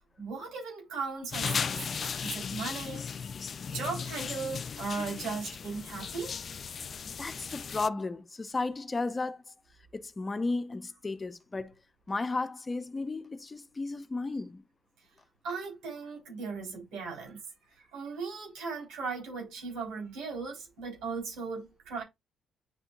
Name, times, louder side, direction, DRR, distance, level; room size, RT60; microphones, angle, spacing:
voice 1, 0.2-3.0 3.7-6.3 15.4-17.4 17.9-22.0, right 4 dB, 85° right, 4.5 m, -37 dB
sound 1, 1.3-7.9, left 6 dB, 45° left, 0.3 m, -36 dB
voice 2, 7.2-9.4 9.9-11.7 12.1-14.6, left 3 dB, 25° left, 0.7 m, -34 dB
9.6 x 4.3 x 2.6 m
cardioid pair, 90°, 0 cm